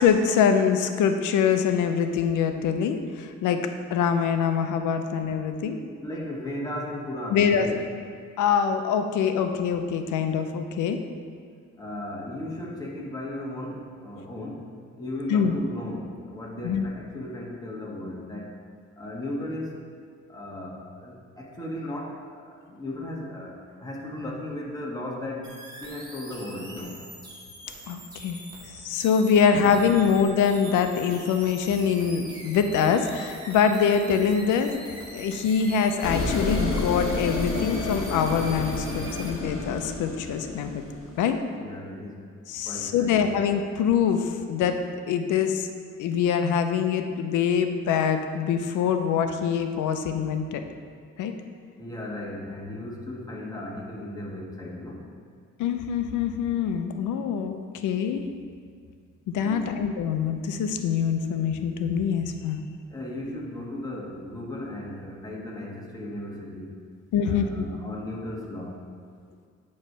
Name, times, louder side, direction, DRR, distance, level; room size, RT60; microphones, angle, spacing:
voice 1, 0.0-5.8 7.3-7.7 8.4-11.0 15.3-15.5 16.6-16.9 27.9-28.4 28.7-34.8 35.1-40.8 41.2-41.4 42.5-44.8 45.1-45.7 46.0-50.6 51.2-51.3 55.6-58.2 59.3-62.6 67.1-67.6, left 7 dB, 85° left, 7 dB, 0.6 m, -24 dB
voice 2, 6.0-7.7 11.8-14.7 15.0-18.5 18.9-19.8 20.3-25.5 25.8-27.0 29.5-29.7 41.5-42.2 42.6-43.3 51.8-55.0 59.4-59.8 62.9-66.7 67.2-68.8, left 1 dB, 10° left, -3 dB, 1.5 m, -36 dB
sound 1, 25.4-39.3, right 1 dB, 15° right, 1.7 m, -43 dB
sound 2, 36.0-41.4, left 3 dB, 45° left, 1.2 m, -30 dB
8.9 x 3.2 x 5.4 m, 2.1 s
cardioid pair, 90°, 30 cm